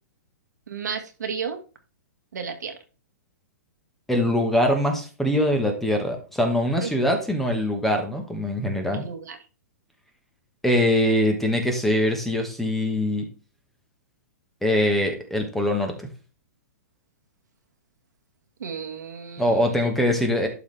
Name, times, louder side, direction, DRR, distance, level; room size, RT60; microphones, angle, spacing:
voice 1, 0.7-1.6 2.3-2.8 6.8-6.9 8.9-9.4 18.6-19.9, right 6 dB, 85° right, 5 dB, 1.8 m, -33 dB
voice 2, 4.1-9.0 10.6-13.3 14.6-16.1 19.4-20.5, left 1 dB, 5° left, 3 dB, 1.3 m, -23 dB
11.5 x 4.1 x 3.4 m, 0.35 s
hypercardioid pair, 145°, 9 cm